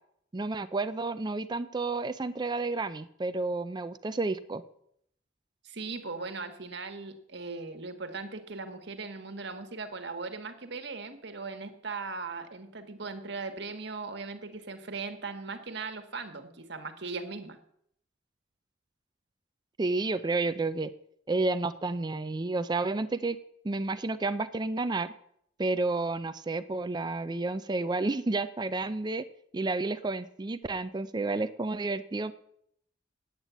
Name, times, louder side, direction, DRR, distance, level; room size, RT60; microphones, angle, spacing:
voice 1, 0.3-4.6 19.8-20.9 21.3-23.4 23.6-25.1 25.6-29.3 29.5-32.3, right 3 dB, 25° right, 12 dB, 0.4 m, -31 dB
voice 2, 5.6-17.6, right 4 dB, 65° right, 7 dB, 1.5 m, -39 dB
9.0 x 8.9 x 8.1 m, 0.70 s
head